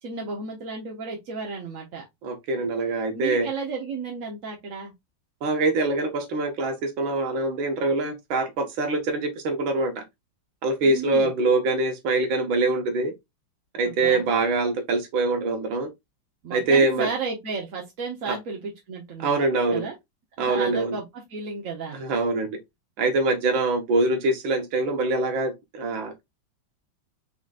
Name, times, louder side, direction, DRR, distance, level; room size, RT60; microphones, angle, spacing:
voice 1, 0.0-2.0 3.1-4.9 10.8-11.3 13.8-14.2 16.4-19.4 19.7-19.9 20.4-22.0, right 4 dB, 50° right, 1.1 m, -33 dB
voice 2, 2.2-3.5 5.4-10.0 10.6-13.1 13.7-15.9 16.5-17.1 18.3-18.4 19.2-19.9 20.4-21.0 21.9-22.6 23.0-26.2, right 2 dB, 75° right, 1.9 m, -24 dB
5.0 x 3.9 x 2.4 m
omnidirectional pair, 2.2 m